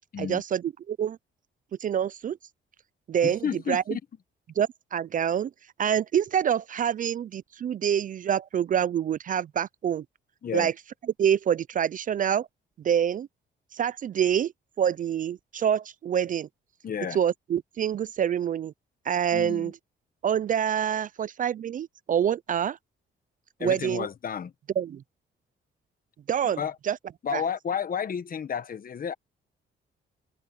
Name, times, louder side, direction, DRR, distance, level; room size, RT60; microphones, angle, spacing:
voice 1, 0.2-1.2 1.8-2.4 3.1-3.4 3.7-4.0 4.6-5.5 5.8-10.0 10.5-10.7 11.2-12.5 12.8-13.3 13.7-14.5 14.8-16.5 17.1-18.7 19.1-19.7 20.2-22.8 23.6-24.1 24.8-25.0 26.3-26.6 26.9-27.0 27.3-27.4, right 9 dB, 45° right, 0.4 m, -26 dB
voice 2, 3.2-4.0 10.4-10.7 16.8-17.2 19.3-19.7 23.6-24.5 26.6-26.8 27.2-29.1, left 7 dB, 45° left, 1.4 m, -31 dB
open air
cardioid pair, 90°, 20 cm